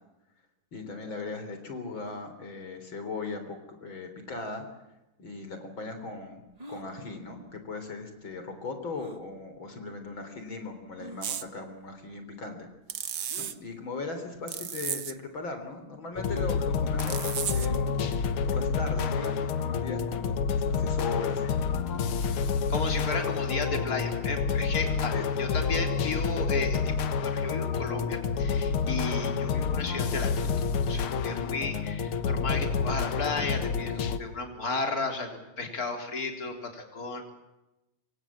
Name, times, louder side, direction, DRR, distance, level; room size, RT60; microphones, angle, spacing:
voice 1, 0.7-4.6 5.2-6.4 6.7-12.7 13.4-21.6 25.1-25.2, left 3 dB, 65° left, 7 dB, 4.3 m, -38 dB
sound 1, 6.6-6.9 9.0-9.2 10.0-10.1 11.0-11.3 13.3-13.6 14.7-14.8 16.2-16.5 17.4-17.6 17.9-18.0 19.1-19.5 21.2-21.5, right 1 dB, 20° right, 2.0 m, -45 dB
sound 2, 11.2-11.5 12.9-13.5 14.5-15.1 17.0-17.8, right 9 dB, 55° right, 1.6 m, -34 dB
sound 3, 16.2-34.2, left 6 dB, 85° left, 2.3 m, -28 dB
voice 2, 22.7-30.5 30.9-37.2, left 3 dB, 45° left, 4 dB, 4.2 m, -34 dB
27.0 x 25.0 x 7.5 m, 0.97 s
omnidirectional pair, 2.3 m